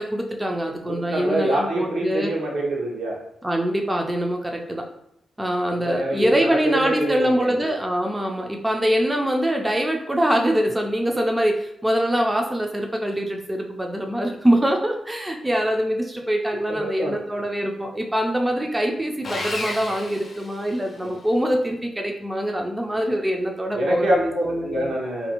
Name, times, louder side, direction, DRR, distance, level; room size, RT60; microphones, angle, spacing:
voice 1, 0.0-2.3 3.4-4.9 5.4-24.9, equal, 10° right, 2 dB, 0.3 m, -24 dB
voice 2, 0.8-3.2 5.7-7.6 16.7-17.2 21.0-21.1 23.7-25.3, right 1 dB, 80° right, -4 dB, 0.9 m, -25 dB
Sawing, 19.2-21.1, left 2 dB, 50° left, 0.5 m, -32 dB
2.5 x 2.5 x 2.8 m, 0.77 s
cardioid pair, 85°, 0 cm